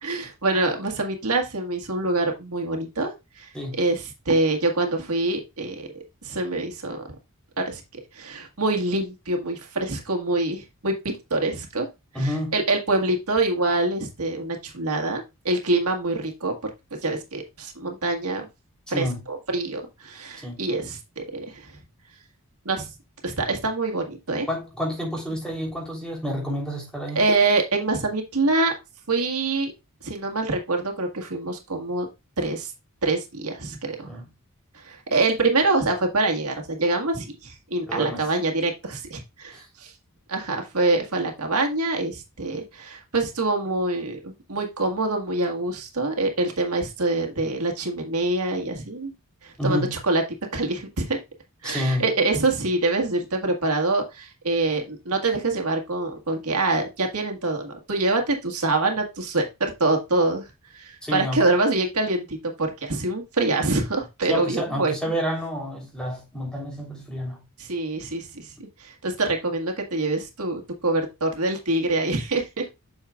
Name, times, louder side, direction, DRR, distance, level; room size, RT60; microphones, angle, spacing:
voice 1, 0.0-3.5 3.8-7.0 7.6-11.9 12.2-16.6 17.0-18.5 18.9-21.7 22.6-22.9 23.2-24.5 27.1-28.7 29.1-29.7 30.0-32.1 32.4-32.7 33.0-34.1 34.7-39.9 40.3-49.1 49.4-50.2 50.5-51.2 51.6-60.4 60.7-65.1 67.6-72.6, right 2 dB, 75° right, 1.7 m, -25 dB
voice 2, 12.1-12.6 18.9-19.2 20.4-20.6 24.5-27.2 34.0-34.2 37.9-38.3 39.5-39.6 49.6-49.9 51.6-52.1 61.0-61.5 64.3-67.4, equal, 5° left, 3.5 m, -29 dB
8.8 x 6.4 x 2.4 m
head